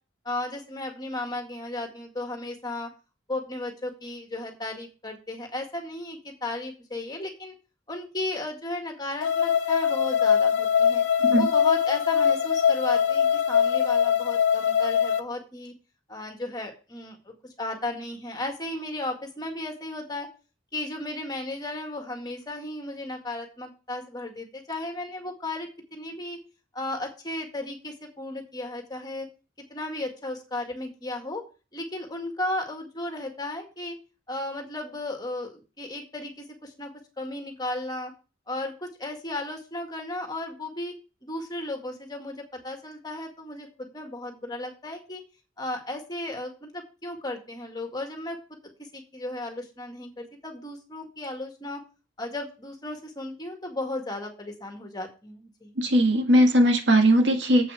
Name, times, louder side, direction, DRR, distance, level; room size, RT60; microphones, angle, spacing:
voice 1, 0.3-2.9 3.3-7.5 7.9-11.0 11.4-15.7 16.1-20.3 20.7-26.4 26.7-29.3 29.7-31.4 31.7-34.0 34.3-38.1 38.5-40.9 41.2-45.2 45.6-48.4 48.8-51.8 52.2-55.7, left 2 dB, 20° left, 1.9 m, -35 dB
sound 1, 9.2-15.2, left 7 dB, 80° left, 0.9 m, -22 dB
voice 2, 55.8-57.7, equal, 70° right, 1.7 m, -19 dB
7.7 x 5.8 x 6.6 m
head